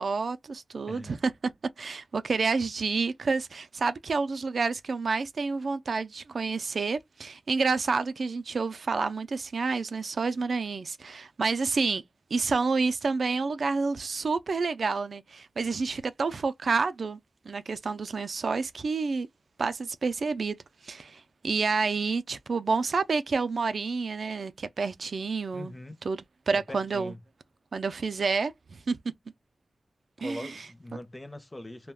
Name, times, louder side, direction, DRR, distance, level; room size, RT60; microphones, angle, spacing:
voice 1, 0.0-1.3 1.8-12.0 12.3-17.2 17.5-19.3 19.6-20.6 20.8-25.7 26.0-27.1 27.7-29.0 30.2-30.7, right 4 dB, 75° right, 0.3 m, -29 dB
voice 2, 25.5-26.0 26.5-27.2 30.2-31.9, left 1 dB, 20° left, 0.5 m, -42 dB
2.2 x 2.1 x 3.3 m
wide cardioid pair, 110°, 0 cm